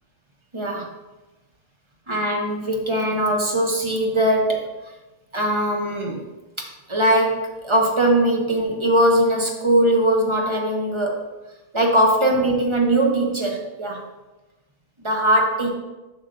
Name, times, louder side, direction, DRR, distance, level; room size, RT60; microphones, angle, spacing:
voice 1, 0.5-0.9 2.1-4.7 5.3-6.3 6.6-11.2 11.7-14.0 15.0-15.8, right 1 dB, 30° right, 0 dB, 0.6 m, -20 dB
7.5 x 5.7 x 2.6 m, 1.1 s
omnidirectional pair, 1.6 m